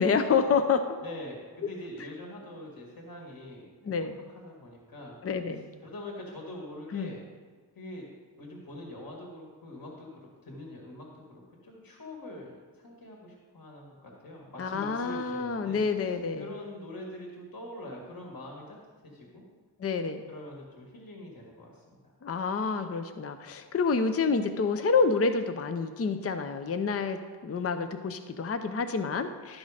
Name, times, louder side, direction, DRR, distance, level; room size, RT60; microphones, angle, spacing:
voice 1, 0.0-0.9 3.9-4.2 5.2-5.6 6.9-7.1 14.6-16.4 19.8-20.2 22.2-29.6, left 5 dB, 35° left, 8 dB, 0.5 m, -28 dB
voice 2, 1.0-3.6 4.3-5.2 5.5-7.2 7.7-8.1 8.4-18.8 19.0-19.4 20.3-22.1, left 1 dB, 50° left, -1 dB, 2.0 m, -44 dB
12.0 x 6.2 x 5.0 m, 1.5 s
wide cardioid pair, 120°, 44 cm